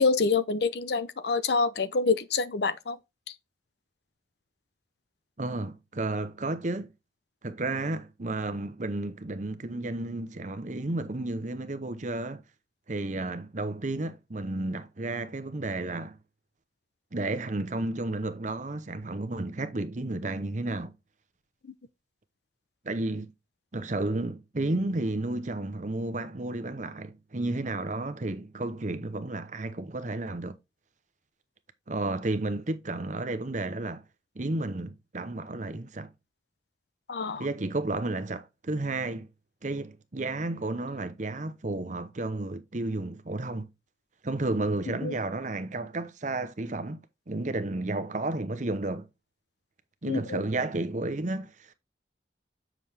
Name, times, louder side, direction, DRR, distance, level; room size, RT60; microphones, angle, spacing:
voice 1, 0.0-3.0 37.1-37.5 45.0-45.2 50.1-50.4, left 4 dB, 65° left, 0.6 m, -26 dB
voice 2, 5.4-6.9 7.4-12.4 12.9-16.2 17.1-20.9 22.8-23.3 23.7-30.6 31.9-34.0 34.3-36.1 37.4-39.3 39.6-43.7 44.2-47.0 47.3-49.1 50.0-51.7, right 2 dB, 45° right, 0.8 m, -32 dB
7.6 x 6.2 x 3.4 m
head